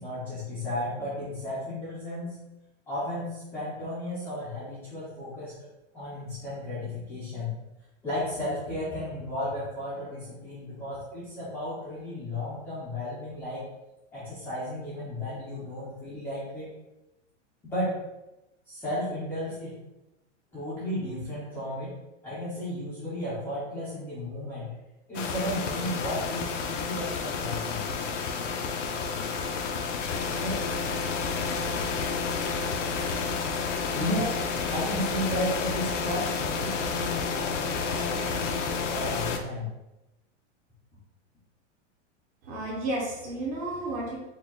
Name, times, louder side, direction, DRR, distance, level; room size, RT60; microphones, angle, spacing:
voice 1, 0.0-2.4 2.9-5.5 5.9-7.5 8.0-13.6 14.1-16.7 17.6-17.9 18.7-19.7 20.5-21.9 22.2-24.7 25.1-27.9 30.3-30.6 33.9-34.3 34.7-39.7, left 1 dB, 5° left, -11 dB, 0.5 m, -34 dB
sound 1, 25.1-39.4, left 5 dB, 85° left, 0.7 m, -30 dB
voice 2, 42.4-44.2, right 2 dB, 25° right, -2 dB, 0.8 m, -32 dB
4.5 x 2.3 x 3.7 m, 0.95 s
supercardioid pair, 165°, 36 cm